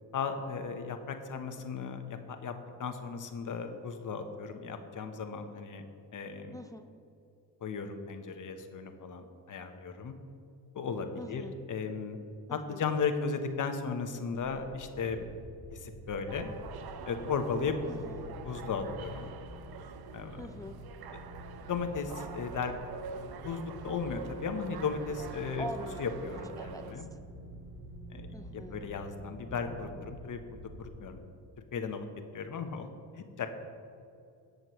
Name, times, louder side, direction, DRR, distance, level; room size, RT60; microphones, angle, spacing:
voice 1, 0.1-2.5 2.8-5.9 6.1-6.6 7.6-10.1 10.7-12.2 12.5-15.3 15.7-16.5 17.1-17.8 18.4-19.3 20.1-20.4 21.1-21.2 21.7-22.8 23.3-25.7 26.0-27.1 28.1-31.2 31.7-32.0 32.3-32.9 33.1-33.5, left 5 dB, 45° left, 7 dB, 1.0 m, -36 dB
voice 2, 6.5-6.9 11.2-11.5 12.5-12.8 17.9-18.2 20.4-20.8 25.6-26.1 26.6-27.1 28.3-28.9, equal, 10° left, 7 dB, 0.4 m, -43 dB
sound 1, 14.5-31.4, right 1 dB, 85° right, 1.8 m, -47 dB
sound 2, 16.3-26.9, right 6 dB, 55° right, 0.8 m, -46 dB
19.0 x 6.5 x 3.1 m, 2.6 s
cardioid pair, 90°, 44 cm